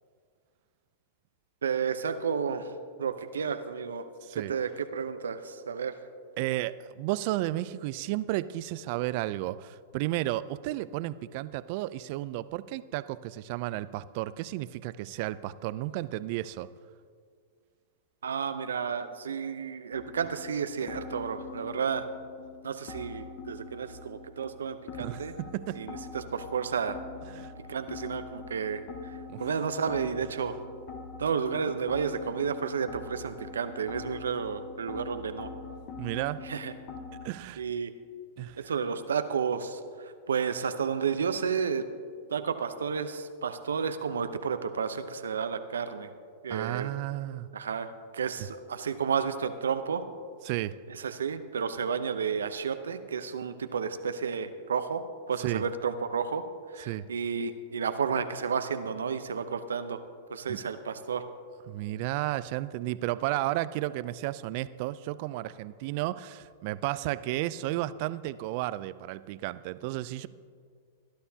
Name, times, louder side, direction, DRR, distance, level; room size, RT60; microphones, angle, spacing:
voice 1, 1.6-2.7 3.0-4.1 4.3-5.9 18.2-22.1 22.6-25.3 25.7-27.0 27.7-30.5 31.2-35.5 36.4-36.7 37.6-37.9 38.6-41.9 42.3-46.1 46.4-46.9 47.5-50.0 50.9-56.4 56.7-60.0 60.3-61.2, right 6 dB, 80° right, 10 dB, 0.8 m, -32 dB
voice 2, 4.2-4.5 6.4-16.7 25.0-25.8 27.3-27.5 29.3-29.4 36.0-36.5 37.2-37.6 38.4-38.7 46.5-47.5 50.4-50.8 55.4-55.6 56.9-57.1 60.5-60.6 61.7-70.3, right 16 dB, 55° right, 17 dB, 0.4 m, -33 dB
sound 1, 19.9-37.3, left 5 dB, 50° left, 2.1 m, -44 dB
19.0 x 11.5 x 2.8 m, 2.1 s
hypercardioid pair, 105°, 0 cm